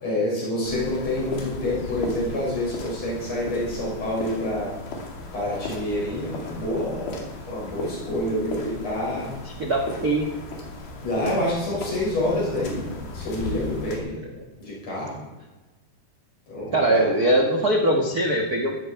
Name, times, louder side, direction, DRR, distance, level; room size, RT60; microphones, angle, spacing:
voice 1, 0.0-4.7 5.3-9.3 11.0-12.8 13.1-14.1 14.6-15.2 16.5-17.1, left 1 dB, 45° left, -5 dB, 7.4 m, -27 dB
sound 1, 0.6-14.0, left 3 dB, 85° left, 4.1 m, -36 dB
voice 2, 9.6-10.3 16.7-18.7, right 1 dB, 80° right, 1 dB, 0.8 m, -21 dB
15.0 x 13.5 x 4.6 m, 1.2 s
omnidirectional pair, 4.2 m